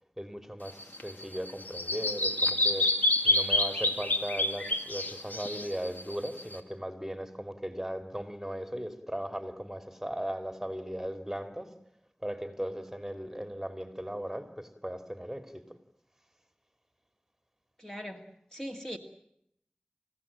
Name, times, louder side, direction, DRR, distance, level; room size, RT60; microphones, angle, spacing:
voice 1, 0.2-2.9 3.2-11.7 12.2-15.8, equal, 10° right, 8 dB, 2.8 m, -37 dB
Bird vocalization bird call bird song, 0.7-6.6, left 1 dB, 85° left, 2.5 m, -28 dB
voice 2, 17.8-19.0, equal, 15° left, 3 dB, 2.3 m, -40 dB
28.0 x 16.5 x 8.8 m, 0.73 s
wide cardioid pair, 45°, 3 cm